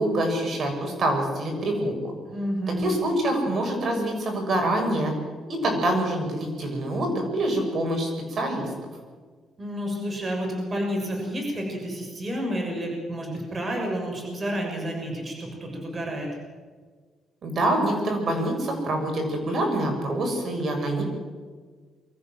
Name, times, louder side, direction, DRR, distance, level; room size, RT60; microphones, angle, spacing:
voice 1, 0.0-1.9 2.7-5.1 5.5-8.7 17.4-21.0, right 1 dB, 50° right, 3 dB, 6.9 m, -25 dB
voice 2, 2.3-3.0 9.6-16.3, equal, 30° right, 1 dB, 6.7 m, -30 dB
24.5 x 14.5 x 7.7 m, 1.5 s
cardioid pair, 90°, 0 cm